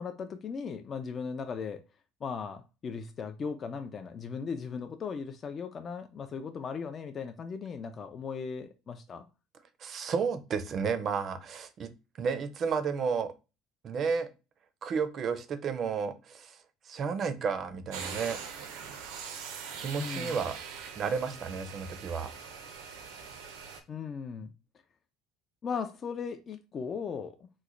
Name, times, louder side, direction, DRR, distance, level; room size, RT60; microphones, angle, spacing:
voice 1, 0.0-1.8 2.2-9.3 20.0-20.4 23.9-24.5 25.6-27.5, left 6 dB, 35° left, 0.3 m, -37 dB
voice 2, 9.8-11.9 12.2-13.3 13.8-14.3 14.8-16.6 16.9-18.4 19.8-20.5 21.0-22.3, right 5 dB, 40° right, 0.5 m, -32 dB
sound 1, 17.9-23.8, right 6 dB, 90° right, 0.6 m, -42 dB
3.0 x 2.1 x 3.6 m
cardioid pair, 125°, 0 cm